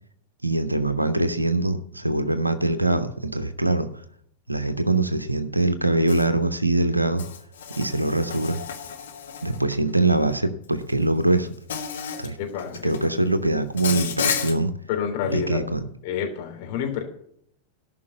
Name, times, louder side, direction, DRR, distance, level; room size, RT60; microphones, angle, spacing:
voice 1, 0.4-3.9 4.5-7.2 7.7-8.6 9.4-11.5 12.2-12.4 12.8-14.7 15.3-15.9, right 2 dB, 85° right, 10 dB, 0.8 m, -23 dB
Insect, 6.1-6.2 7.2-9.7 10.9-11.0 11.7-12.3 12.6-13.1 13.8-14.5, left 7 dB, 65° left, 1.7 m, -31 dB
voice 2, 12.4-13.1 14.9-15.6 16.0-17.0, left 7 dB, 50° left, 2 dB, 3.4 m, -29 dB
13.5 x 5.9 x 9.1 m, 0.70 s
figure-of-eight pair, 90°, 0 cm